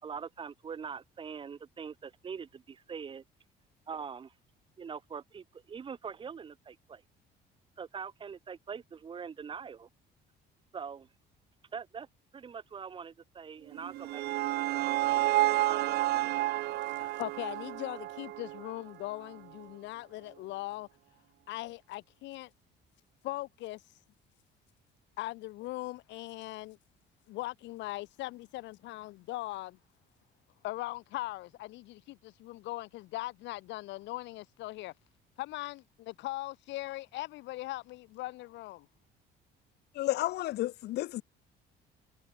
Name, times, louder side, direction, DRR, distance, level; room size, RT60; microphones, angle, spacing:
voice 1, 0.0-3.2 3.9-4.3 4.8-7.0 7.8-9.9 10.7-11.1 11.7-12.1 12.3-15.2 15.7-16.5, right 6 dB, 25° right, 5.0 m, -43 dB
sound 1, 13.7-18.9, right 16 dB, 65° right, 1.0 m, -30 dB
voice 2, 17.0-20.9 21.5-22.5 23.2-23.8 25.2-26.8 27.3-29.8 30.6-34.9 35.4-38.9, left 18 dB, 80° left, 4.2 m, -40 dB
voice 3, 40.0-41.2, left 16 dB, 65° left, 1.2 m, -31 dB
cardioid pair, 165°, 18 cm